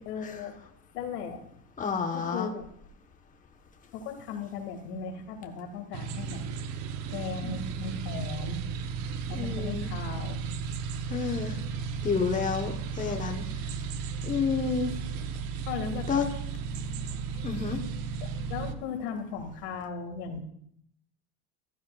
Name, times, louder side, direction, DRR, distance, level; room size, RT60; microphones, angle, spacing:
voice 1, 0.1-0.5 0.9-1.5 2.1-2.6 3.9-6.4 7.1-8.6 9.3-10.5 15.7-16.2 18.2-20.4, left 5 dB, 85° left, 4 dB, 2.3 m, -37 dB
voice 2, 1.8-2.5 7.4-7.5 9.3-9.9 11.1-11.6 12.0-13.4 14.2-14.9 16.1-16.3 17.4-17.8, left 5 dB, 15° left, 3 dB, 1.2 m, -29 dB
sound 1, 5.9-18.8, right 6 dB, 85° right, 1.1 m, -34 dB
15.5 x 11.5 x 2.4 m, 0.68 s
supercardioid pair, 120°, 46 cm